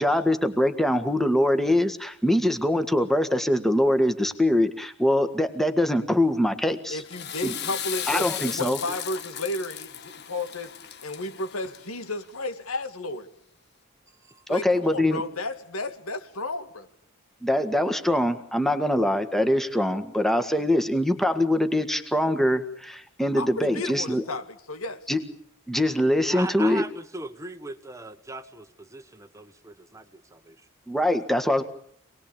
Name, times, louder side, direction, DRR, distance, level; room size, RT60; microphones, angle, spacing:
voice 1, 0.0-7.0 7.4-7.6 8.1-8.8 14.5-15.2 17.4-24.2 25.1-25.2 25.7-26.8 30.9-31.6, left 1 dB, ahead, 1.8 m, -23 dB
voice 2, 6.9-10.7 11.0-13.3 14.5-16.9 23.4-25.0, left 2 dB, 85° left, 2.2 m, -33 dB
Water / Toilet flush, 6.9-12.1, left 10 dB, 50° left, 1.5 m, -36 dB
voice 3, 26.3-30.5, right 2 dB, 15° right, 1.3 m, -39 dB
27.0 x 20.0 x 8.9 m
head